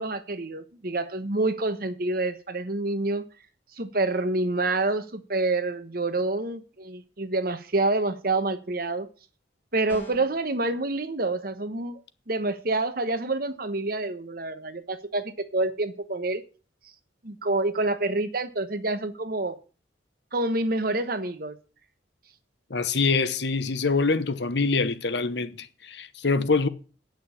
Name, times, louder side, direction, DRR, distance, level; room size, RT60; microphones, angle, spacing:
voice 1, 0.0-3.3 3.8-9.1 9.7-12.0 12.3-16.4 17.2-19.6 20.3-21.5, right 2 dB, 50° right, 1.2 m, -27 dB
sound 1, 9.9-10.4, right 1 dB, 10° left, 3.0 m, -42 dB
voice 2, 22.7-26.7, left 4 dB, 65° left, 1.0 m, -25 dB
9.3 x 6.2 x 8.5 m
head